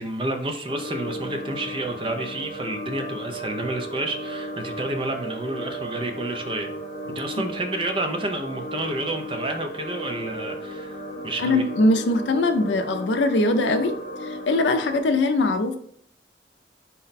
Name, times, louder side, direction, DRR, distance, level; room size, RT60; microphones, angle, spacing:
voice 1, 0.0-6.7 7.1-11.6, right 1 dB, 30° right, 5 dB, 0.4 m, -30 dB
sound 1, 0.7-15.0, equal, 50° left, 0.8 m, -35 dB
voice 2, 11.4-15.8, left 2 dB, 80° left, 8 dB, 0.4 m, -22 dB
4.1 x 2.1 x 4.0 m, 0.63 s
head